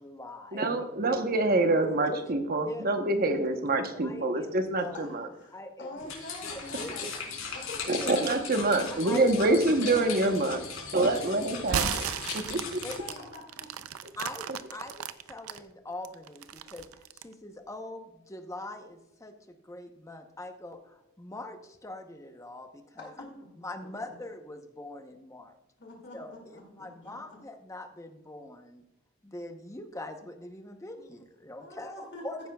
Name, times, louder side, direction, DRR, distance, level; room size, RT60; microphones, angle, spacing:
voice 1, 0.0-1.2 1.8-2.2 2.6-2.9 3.2-3.6 3.9-5.0 5.5-5.9 6.4-7.1 8.0-8.3 8.9-10.2 10.6-10.7 12.8-13.2 14.2-23.1 23.6-25.6 26.1-28.8 29.2-32.5, left 1 dB, 15° left, 5 dB, 0.8 m, -42 dB
voice 2, 0.5-5.3 7.9-12.1 12.3-12.8, right 2 dB, 45° right, 6 dB, 1.0 m, -26 dB
voice 3, 4.8-8.6 13.0-13.7 23.0-23.3 23.8-23.9 25.8-27.4 30.9-31.1 31.6-32.2, left 1 dB, 55° left, 0 dB, 2.4 m, -45 dB
sound 1, 6.0-13.2, left 6 dB, 75° left, 3.8 m, -39 dB
sound 2, 11.6-15.6 16.0-17.3, right 8 dB, 90° right, 0.5 m, -34 dB
14.5 x 10.0 x 2.3 m, 0.92 s
head